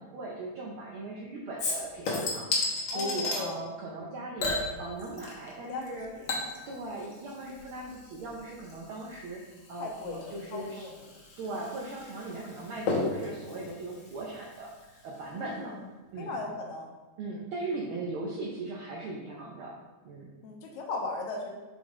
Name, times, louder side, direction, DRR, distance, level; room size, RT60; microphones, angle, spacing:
voice 1, 0.0-2.5 2.9-6.1 6.4-9.4 9.7-10.9 11.4-15.7 16.1-16.4 17.2-19.7 20.0-20.3, right 2 dB, 90° right, -3 dB, 1.1 m, -39 dB
Chink clink / Liquid, 1.6-3.4 4.4-5.5 5.8-14.8 15.2-15.3, left 3 dB, 55° left, 1.5 m, -35 dB
voice 2, 2.9-3.7 5.6-6.8 9.8-11.1 15.3-15.8 16.2-16.9 20.4-21.6, left 3 dB, 80° left, 1 dB, 2.0 m, -38 dB
5.3 x 5.2 x 3.7 m, 1.2 s
omnidirectional pair, 3.3 m